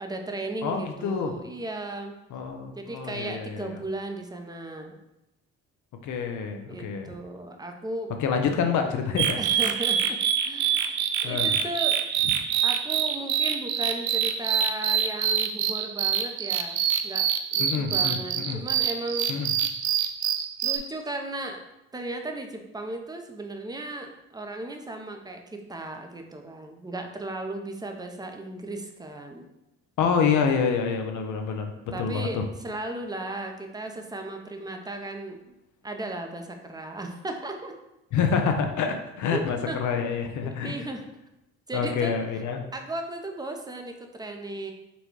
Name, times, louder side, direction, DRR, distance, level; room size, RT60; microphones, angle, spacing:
voice 1, 0.0-2.2 2.8-5.0 6.7-8.1 9.4-12.0 12.6-16.8 17.0-19.3 20.6-21.6 21.9-29.5 31.9-32.4 32.6-35.4 35.8-37.7 39.3-39.4 39.7-39.8 40.6-41.2 41.7-42.1 42.7-44.7, right 2 dB, 15° right, 4 dB, 0.6 m, -36 dB
voice 2, 0.6-1.3 2.3-3.8 6.0-7.2 8.2-9.4 11.2-11.5 12.2-12.3 17.6-18.6 19.3-19.5 30.0-31.7 32.0-32.4 38.1-40.8 41.7-42.7, left 6 dB, 75° left, 4 dB, 0.6 m, -27 dB
sound 1, 9.2-20.8, right 9 dB, 70° right, 0.4 m, -26 dB
4.1 x 2.2 x 4.5 m, 0.93 s
cardioid pair, 90°, 30 cm